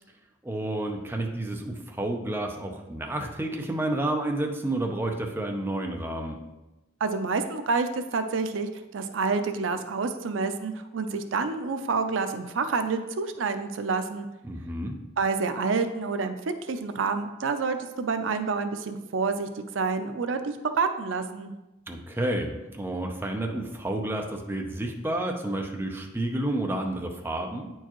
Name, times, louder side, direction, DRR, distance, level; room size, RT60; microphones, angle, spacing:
voice 1, 0.4-6.4 14.4-14.9 21.9-27.7, right 1 dB, 10° right, 1 dB, 0.6 m, -30 dB
voice 2, 7.0-14.3 15.2-21.5, right 4 dB, 75° right, 8 dB, 0.5 m, -28 dB
9.0 x 4.6 x 3.0 m, 1.0 s
head